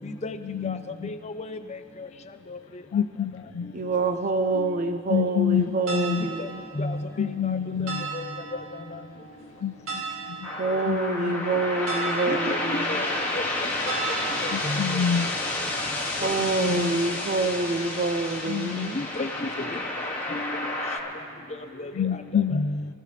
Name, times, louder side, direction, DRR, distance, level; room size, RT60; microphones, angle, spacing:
voice 1, 0.0-0.4 0.6-0.7 1.5-1.6 6.2-6.5 6.8-7.0 8.1-8.2 12.3-12.6 12.9-13.1 13.3-13.4 14.6-14.8 18.9-19.5 20.3-20.7 22.5-22.8, left 2 dB, 35° left, 7 dB, 0.7 m, -31 dB
voice 2, 0.5-1.1 2.9-3.7 5.1-5.6 5.9-6.2 7.2-8.0 9.6-9.7 10.9-11.5 14.5-15.3 16.6-16.9 18.5-18.9 22.0-22.6, left 8 dB, 65° left, 10 dB, 0.3 m, -27 dB
voice 3, 3.7-6.6 10.6-13.0 16.2-19.0, right 3 dB, 40° right, 8 dB, 0.6 m, -27 dB
sound 1, 5.5-20.7, right 5 dB, 85° right, 2.9 m, -39 dB
sound 2, 10.4-21.0, left 2 dB, 10° left, 2.1 m, -30 dB
24.0 x 14.0 x 3.3 m, 2.6 s
head